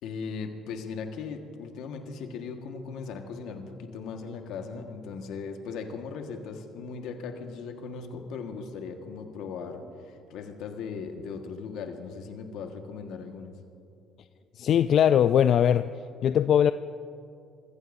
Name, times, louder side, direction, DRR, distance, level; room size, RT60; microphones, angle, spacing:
voice 1, 0.0-13.5, left 5 dB, 75° left, 4 dB, 1.5 m, -38 dB
voice 2, 14.6-15.9 16.2-16.7, left 9 dB, 60° left, 11 dB, 0.3 m, -20 dB
26.5 x 15.0 x 2.6 m, 2.6 s
supercardioid pair, 85°, 0 cm